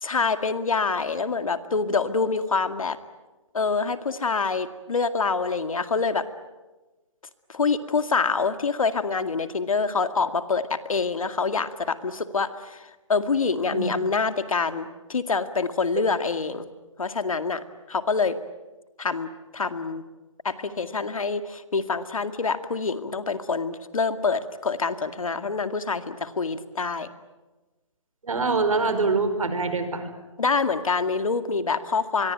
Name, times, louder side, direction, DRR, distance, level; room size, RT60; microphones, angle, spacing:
voice 1, 0.0-3.0 3.5-6.2 7.5-16.7 17.0-18.4 19.0-20.0 20.4-27.1 30.4-32.3, left 4 dB, 90° left, 10 dB, 2.2 m, -26 dB
voice 2, 28.2-30.1, right 4 dB, 85° right, 9 dB, 5.1 m, -24 dB
25.5 x 23.0 x 9.3 m, 1.2 s
hypercardioid pair, 155°, 17 cm